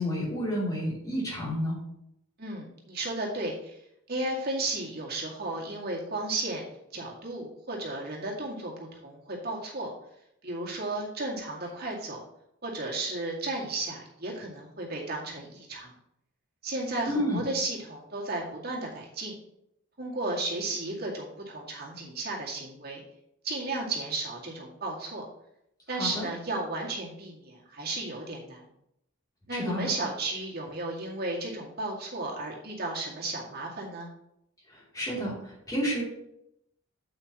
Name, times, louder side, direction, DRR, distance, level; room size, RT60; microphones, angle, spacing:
voice 1, 0.0-1.8 17.1-17.5 25.9-26.3 29.5-29.9 34.7-36.0, equal, 15° left, -5 dB, 2.9 m, -30 dB
voice 2, 2.4-3.8 4.1-6.7 6.9-8.7 9.0-9.9 10.4-12.2 12.6-15.9 16.6-19.3 20.0-23.0 23.4-25.2 25.9-28.7 29.5-34.1, right 2 dB, 45° right, -2 dB, 2.1 m, -34 dB
8.5 x 8.2 x 3.0 m, 0.77 s
head